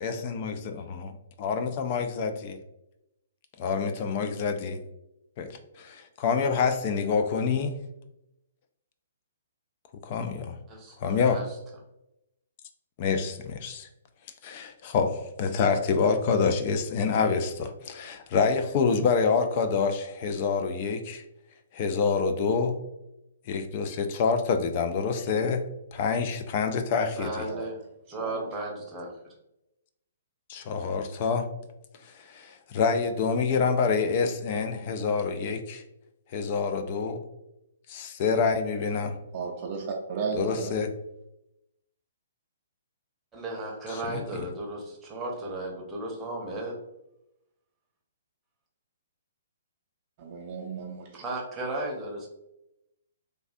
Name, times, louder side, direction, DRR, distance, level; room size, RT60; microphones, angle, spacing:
voice 1, 0.0-2.6 3.6-4.8 5.4-7.8 10.0-10.6 11.0-11.4 13.0-13.9 14.4-21.2 21.7-22.8 23.5-25.6 25.9-27.5 30.5-31.5 32.0-35.8 36.3-37.2 37.9-39.2 40.4-40.9 43.9-44.5, left 5 dB, 40° left, 8 dB, 0.3 m, -27 dB
voice 2, 27.2-27.8 28.1-29.1 43.3-46.8 51.2-52.3, right 2 dB, 15° right, -2 dB, 0.7 m, -35 dB
voice 3, 28.2-28.6 39.3-40.7 50.2-51.2, right 5 dB, 40° right, 0 dB, 0.4 m, -34 dB
3.2 x 2.4 x 2.5 m, 0.88 s
figure-of-eight pair, 125°, 0 cm